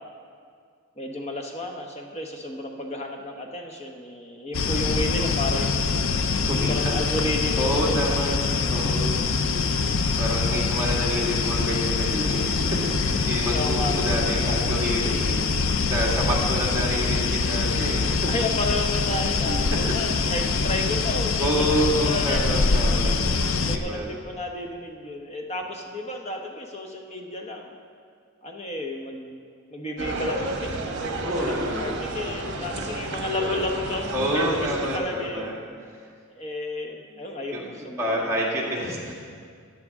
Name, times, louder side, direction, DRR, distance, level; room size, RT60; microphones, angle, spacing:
voice 1, 1.0-6.0 6.7-8.7 13.5-14.1 18.3-22.7 23.6-27.7 28.4-34.7 34.9-35.5 36.3-38.4, left 1 dB, 30° left, 2 dB, 0.9 m, -32 dB
sound 1, 4.5-23.8, left 4 dB, 65° left, 0.5 m, -24 dB
voice 2, 6.5-7.0 7.6-8.4 8.7-9.3 10.2-18.3 19.5-19.8 21.4-23.2 23.7-24.1 31.2-31.9 34.1-35.5 37.0-37.1 37.5-37.6 38.0-39.1, equal, 15° right, -5 dB, 1.9 m, -28 dB
sound 2, 30.0-35.0, right 2 dB, 55° right, 1.1 m, -31 dB
14.0 x 9.3 x 3.6 m, 2.1 s
head